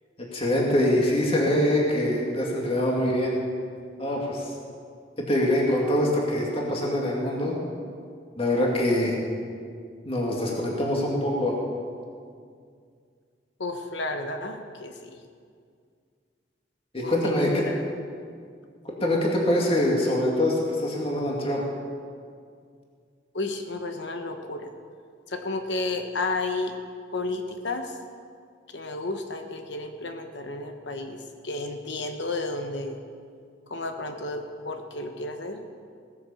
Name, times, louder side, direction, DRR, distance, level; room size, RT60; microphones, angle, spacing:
voice 1, 0.3-3.3 4.0-4.5 5.2-7.6 8.4-9.2 10.0-11.6 16.9-17.6 19.0-21.6, left 1 dB, 30° left, -2 dB, 2.3 m, -24 dB
voice 2, 13.6-15.1 17.0-17.8 23.3-24.7 25.3-26.7 27.1-28.0 28.7-31.2 31.4-33.0 33.7-35.6, left 2 dB, 70° left, 5 dB, 1.1 m, -32 dB
17.5 x 9.8 x 7.1 m, 2.2 s
head